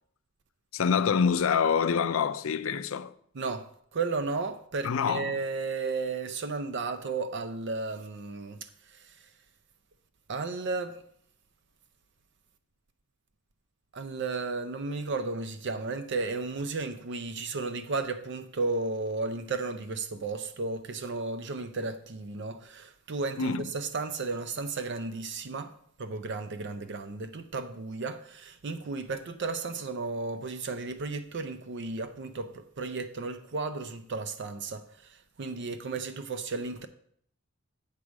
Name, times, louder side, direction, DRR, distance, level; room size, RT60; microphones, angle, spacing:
voice 1, 0.7-3.1 4.8-5.4 23.4-23.7, left 6 dB, 70° left, 0.4 m, -26 dB
voice 2, 3.3-9.3 10.3-11.0 13.9-25.7 26.0-36.9, right 3 dB, 55° right, 0.6 m, -34 dB
8.3 x 4.8 x 6.2 m
head